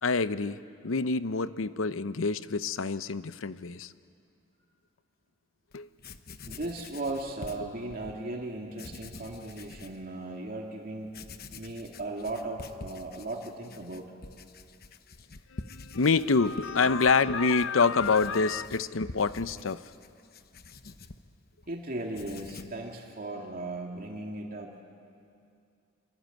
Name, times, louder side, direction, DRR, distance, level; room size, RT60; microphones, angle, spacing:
voice 1, 0.0-3.9 5.7-5.9 15.5-19.8, left 4 dB, 80° left, 14 dB, 0.8 m, -27 dB
Writing, 5.7-5.8 6.0-8.2 8.7-10.0 10.5-10.6 11.1-21.7 22.0-22.8, left 3 dB, 50° left, 1.1 m, -47 dB
voice 2, 6.5-11.2 11.6-14.1 21.7-24.8, right 2 dB, 50° right, 1 dB, 2.3 m, -37 dB
26.0 x 24.5 x 9.1 m, 2.4 s
head